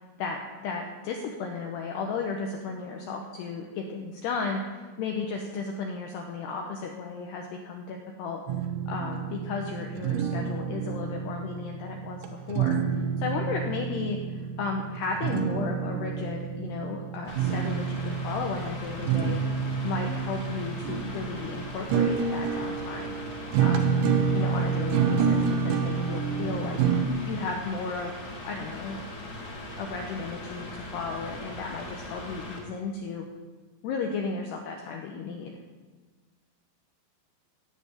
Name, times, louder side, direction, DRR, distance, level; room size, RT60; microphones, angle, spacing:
voice 1, 0.2-4.6 5.0-8.4 8.9-12.8 13.2-19.4 19.8-23.2 23.6-24.0 24.3-26.8 27.3-28.1 28.4-29.0 29.8-33.3 33.8-35.6, left 4 dB, 80° left, 2 dB, 2.5 m, -34 dB
sound 1, 8.5-27.1, right 6 dB, 75° right, 2.9 m, -28 dB
Mechanical fan, 17.3-32.6, left 2 dB, 35° left, 1.7 m, -40 dB
17.0 x 5.8 x 8.9 m, 1.4 s
omnidirectional pair, 5.9 m